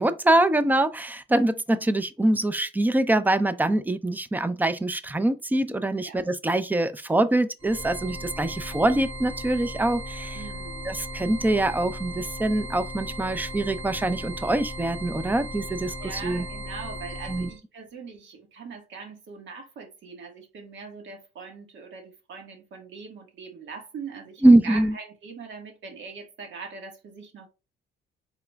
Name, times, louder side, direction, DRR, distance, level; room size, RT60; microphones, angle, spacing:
voice 1, 0.0-10.4 10.9-16.4 17.3-17.5 24.4-24.9, right 1 dB, 10° right, 0.5 m, -24 dB
sound 1, 7.6-17.6, equal, 25° right, 1.9 m, -36 dB
voice 2, 10.3-10.9 16.0-27.5, right 5 dB, 70° right, 1.5 m, -41 dB
4.2 x 3.9 x 2.3 m
cardioid pair, 90°, 20 cm